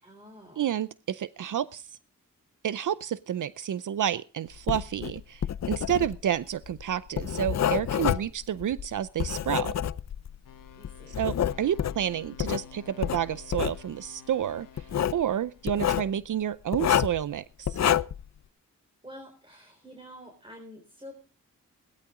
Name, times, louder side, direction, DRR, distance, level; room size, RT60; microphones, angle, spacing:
voice 1, 0.0-0.7 10.7-11.2 19.0-21.1, equal, 15° right, 4 dB, 4.2 m, -48 dB
voice 2, 0.6-1.9 2.6-9.7 11.1-14.9 15.1-17.8, right 10 dB, 65° right, 17 dB, 0.6 m, -30 dB
Writing, 4.6-10.4 10.8-12.6 13.0-13.8 14.8-15.2 15.7-16.1 16.7-17.2 17.7-18.3, left 9 dB, 55° left, 0.6 m, -28 dB
sound 1, 10.4-15.7, left 7 dB, 75° left, 1.1 m, -51 dB
17.5 x 12.5 x 3.7 m, 0.36 s
cardioid pair, 60°, 33 cm